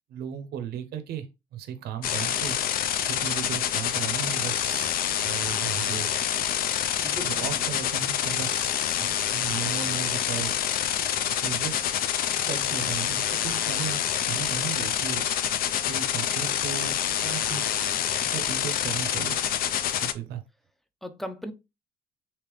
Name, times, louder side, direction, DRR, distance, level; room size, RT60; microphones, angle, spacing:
voice 1, 0.1-1.3 1.5-2.6 3.0-6.1 7.2-10.6 11.3-15.3 15.8-17.7 18.3-19.4 19.8-20.4, right 9 dB, 70° right, 0.6 m, -36 dB
sound 1, 2.0-20.1, left 10 dB, 60° left, 0.4 m, -27 dB
voice 2, 7.0-7.6 8.3-8.4 9.0-9.2 21.0-21.5, equal, ahead, 0.4 m, -38 dB
3.4 x 2.8 x 3.0 m
cardioid pair, 110°, 17 cm